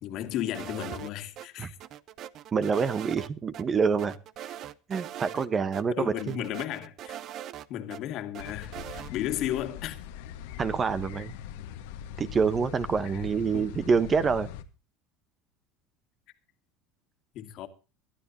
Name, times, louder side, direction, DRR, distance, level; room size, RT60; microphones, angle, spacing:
voice 1, 0.0-1.8 6.0-7.2 7.7-10.0 13.1-13.2 13.5-13.7 17.3-17.7, left 12 dB, 50° left, 2.2 m, -34 dB
sound 1, 0.5-1.5 1.8-3.3 3.5-3.6 4.0-5.5 5.7-5.8 6.2-8.0 8.3-9.1, right 11 dB, 40° right, 0.8 m, -41 dB
voice 2, 2.5-4.1 4.9-6.4 10.6-11.3 12.2-14.5, right 5 dB, 25° right, 1.0 m, -26 dB
sound 2, 8.4-14.6, left 10 dB, 80° left, 1.7 m, -41 dB
22.5 x 12.0 x 2.8 m
supercardioid pair, 145°, 0 cm